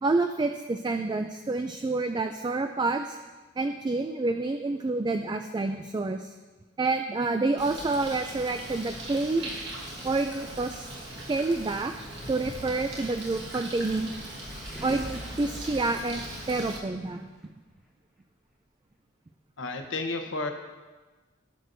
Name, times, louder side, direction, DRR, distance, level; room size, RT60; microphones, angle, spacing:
voice 1, 0.0-3.2 3.6-6.3 6.8-9.5 10.0-10.9 11.3-11.9 12.3-14.1 14.8-17.3, right 3 dB, 20° right, 6 dB, 0.3 m, -28 dB
Bird, 7.6-16.8, right 1 dB, 60° right, 1.6 m, -40 dB
sound 1, 14.1-17.4, equal, ahead, 1.1 m, -43 dB
voice 2, 19.6-20.5, left 3 dB, 70° left, 4 dB, 1.0 m, -31 dB
17.0 x 6.3 x 2.6 m, 1.3 s
head